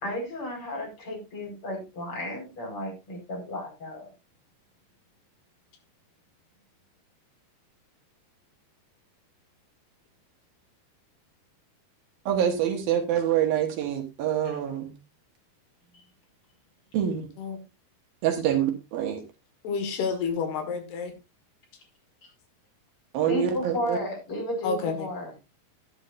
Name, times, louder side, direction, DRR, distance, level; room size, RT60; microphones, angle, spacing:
voice 1, 0.0-4.1 15.9-16.0 23.2-25.3, left 1 dB, 35° left, 5.4 m, -33 dB
voice 2, 12.3-14.9 16.9-17.3 18.2-19.2 23.1-24.0, right 10 dB, 70° right, 3.1 m, -26 dB
voice 3, 19.6-21.1 24.6-25.1, left 5 dB, 80° left, 3.8 m, -29 dB
11.5 x 11.5 x 2.6 m
omnidirectional pair, 4.6 m